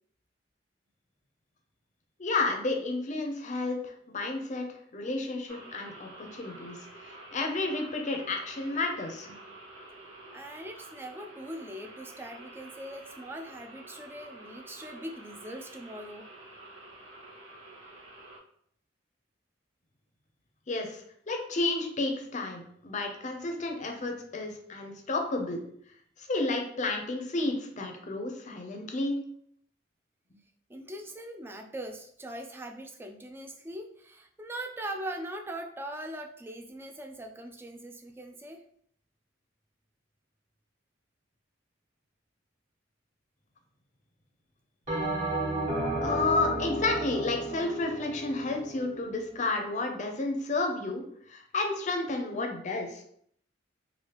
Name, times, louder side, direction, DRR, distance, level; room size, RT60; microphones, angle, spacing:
voice 1, 2.2-4.7 4.9-9.3 20.7-25.6 26.2-29.2 46.0-53.0, left 2 dB, 40° left, 3 dB, 0.5 m, -31 dB
sound 1, 5.5-18.4, right 2 dB, 80° right, 1.0 m, -49 dB
voice 2, 10.3-16.3 30.7-38.6, right 1 dB, 10° right, 4 dB, 0.3 m, -41 dB
Bell, 44.9-49.5, right 1 dB, 35° right, 1.3 m, -33 dB
3.3 x 2.5 x 2.9 m, 0.67 s
head